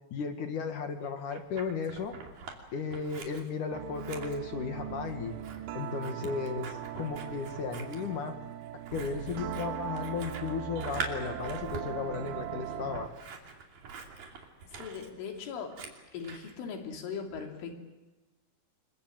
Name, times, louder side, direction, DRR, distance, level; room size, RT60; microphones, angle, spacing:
voice 1, 0.1-2.2 2.7-5.3 5.7-8.4 8.7-13.1, left 5 dB, 55° left, 6 dB, 2.6 m, -35 dB
Scissors, 1.0-2.6 2.9-16.5, right 4 dB, 50° right, 4.1 m, -44 dB
sound 1, 3.7-13.2, right 11 dB, 80° right, 3.3 m, -40 dB
voice 2, 14.7-15.8 16.1-17.8, left 6 dB, 85° left, 2 dB, 5.4 m, -39 dB
28.0 x 23.5 x 7.7 m, 1.1 s
omnidirectional pair, 5.4 m